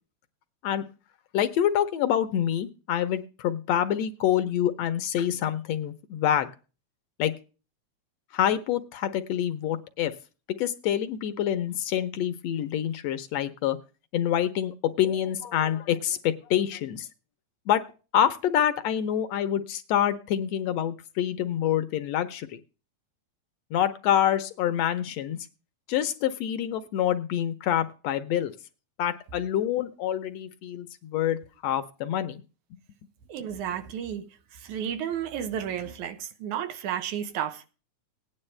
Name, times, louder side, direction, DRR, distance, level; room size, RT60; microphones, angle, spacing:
voice 1, 1.3-6.5 7.2-7.3 8.3-10.1 10.6-13.8 14.1-17.1 17.7-17.8 18.1-22.6 23.7-25.4 25.9-28.5 29.0-32.4, left 10 dB, 75° left, 1.8 m, -26 dB
voice 2, 33.3-37.7, right 9 dB, 85° right, 2.5 m, -32 dB
17.0 x 9.8 x 3.3 m
omnidirectional pair, 3.3 m